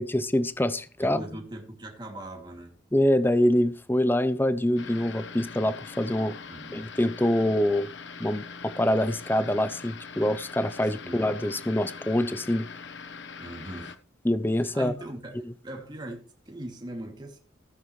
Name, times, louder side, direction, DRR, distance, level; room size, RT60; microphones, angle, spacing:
voice 1, 0.0-1.2 2.9-6.4 6.7-7.9 8.2-12.6 14.2-14.9, left 1 dB, 10° left, 0.6 m, -25 dB
voice 2, 1.0-2.8 6.5-6.8 11.0-11.2 13.4-13.9 14.6-17.4, right 1 dB, 20° right, 2.6 m, -40 dB
sound 1, 4.8-14.0, left 5 dB, 70° left, 1.2 m, -42 dB
15.5 x 9.8 x 3.2 m
head